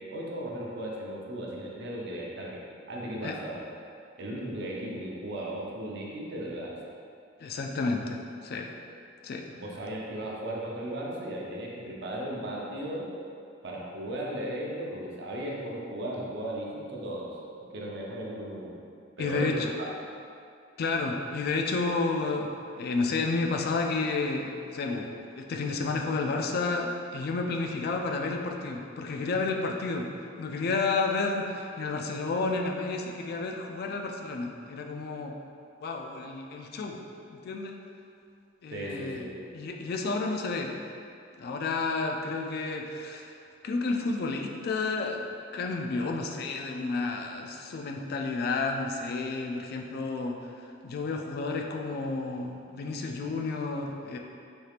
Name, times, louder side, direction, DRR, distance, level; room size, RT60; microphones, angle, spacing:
voice 1, 0.1-2.6 2.9-3.6 4.2-6.8 9.5-13.1 13.6-17.3 17.7-18.8 19.2-19.9 38.7-39.5, right 1 dB, 60° right, -3 dB, 0.6 m, -36 dB
voice 2, 7.4-8.2 8.4-8.7 9.2-9.5 19.2-19.7 20.8-22.5 22.8-30.1 30.4-35.3 35.8-37.0 37.3-37.8 38.6-39.3 39.5-40.7 41.4-43.3 43.6-50.4 50.8-54.2, left 3 dB, 55° left, 2 dB, 0.3 m, -31 dB
4.3 x 3.3 x 2.4 m, 2.4 s
head